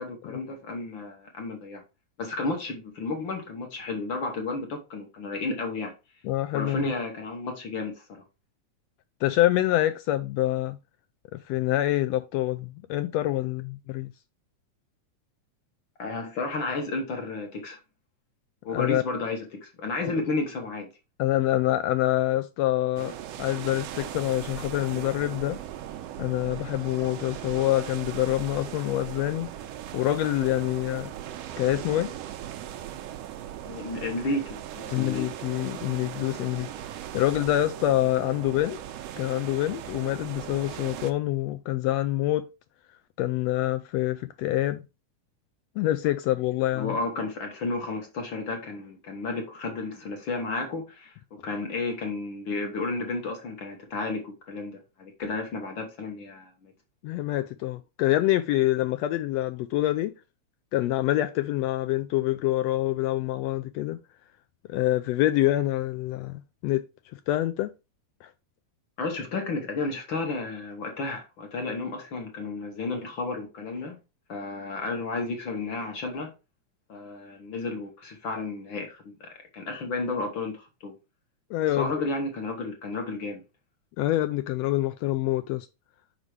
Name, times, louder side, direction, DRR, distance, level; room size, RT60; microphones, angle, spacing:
voice 1, 0.0-1.8 2.2-5.9 6.5-8.2 16.0-17.8 18.6-20.9 33.6-35.3 46.7-56.7 69.0-74.0 74.3-76.3 76.9-80.9 81.7-83.4, left 3 dB, 55° left, 1.6 m, -32 dB
voice 2, 6.2-6.9 9.2-10.8 11.3-14.1 18.7-19.0 21.2-23.1 23.4-25.6 26.2-29.5 29.9-31.1 31.6-32.1 34.9-36.7 37.1-38.8 39.2-42.4 43.2-44.8 45.8-46.9 57.0-60.1 60.7-64.0 64.7-66.8 67.1-67.7 68.2-68.3 81.5-82.1 84.0-85.7, left 15 dB, 80° left, 1.5 m, -26 dB
sound 1, 23.0-41.1, right 11 dB, 75° right, 1.6 m, -38 dB
5.5 x 5.0 x 4.6 m
omnidirectional pair, 3.3 m